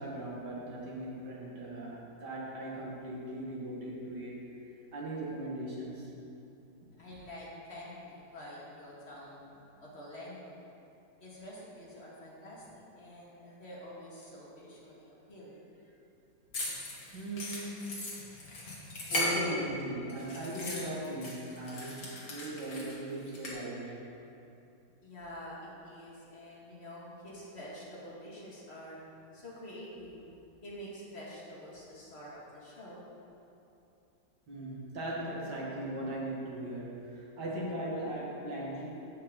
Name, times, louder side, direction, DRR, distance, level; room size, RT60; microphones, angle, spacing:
voice 1, 0.0-4.5 4.9-6.1 17.1-17.9 19.1-24.0 34.5-38.9, right 1 dB, 65° right, -4 dB, 2.3 m, -38 dB
voice 2, 7.0-9.4 9.8-10.7 11.2-16.0 18.3-18.9 19.5-19.6 21.9-22.1 25.0-29.0 29.3-30.2 30.6-33.0, equal, 35° left, -6 dB, 2.2 m, -47 dB
sound 1, 16.5-19.8 20.1-23.5, left 1 dB, 50° left, 2.0 m, -37 dB
15.0 x 5.6 x 3.9 m, 2.8 s
omnidirectional pair, 2.0 m